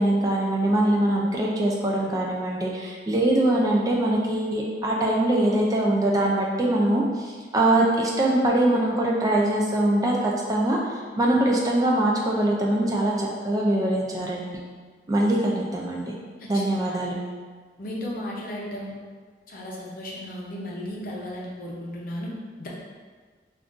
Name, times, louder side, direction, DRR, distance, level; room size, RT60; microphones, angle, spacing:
voice 1, 0.0-14.5 15.1-16.1 16.5-17.2, right 1 dB, 20° right, -2 dB, 0.3 m, -23 dB
voice 2, 16.4-17.0 17.8-19.0 19.5-22.3 22.6-22.7, left 1 dB, 50° left, -4 dB, 0.6 m, -35 dB
2.5 x 2.4 x 3.6 m, 1.5 s
head